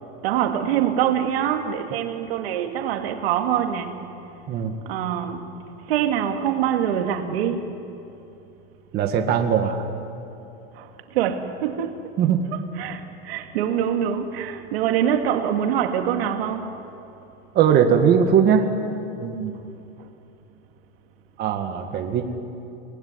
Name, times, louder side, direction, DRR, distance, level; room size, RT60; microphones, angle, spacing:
voice 1, 0.2-4.1 4.9-5.5 5.9-7.7 10.7-12.0 12.8-16.7, right 9 dB, 75° right, 2.4 m, -24 dB
voice 2, 8.9-9.8 12.2-12.4 17.5-18.6 19.2-19.6 21.4-22.2, right 8 dB, 35° right, 2.0 m, -20 dB
30.0 x 19.5 x 9.8 m
supercardioid pair, 160°, 30 cm